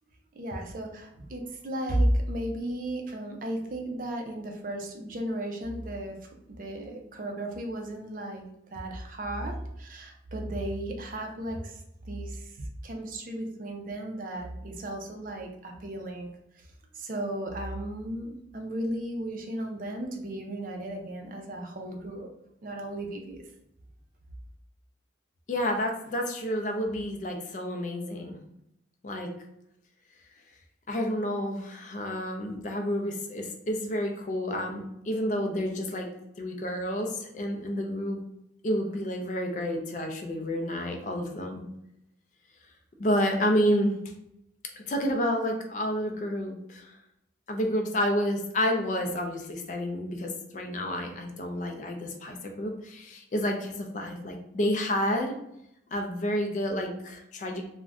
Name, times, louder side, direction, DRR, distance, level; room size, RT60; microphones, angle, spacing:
voice 1, 0.3-6.2 6.5-8.4 8.7-16.3 16.5-16.7 16.9-22.3 22.6-23.4, right 1 dB, 45° right, 2 dB, 0.5 m, -34 dB
voice 2, 25.5-28.4 29.0-29.3 30.9-36.1 36.4-38.2 38.6-41.6 43.0-44.0 44.8-46.9 47.5-55.3 55.9-57.6, equal, 40° left, 3 dB, 0.4 m, -30 dB
2.5 x 2.1 x 3.4 m, 0.80 s
head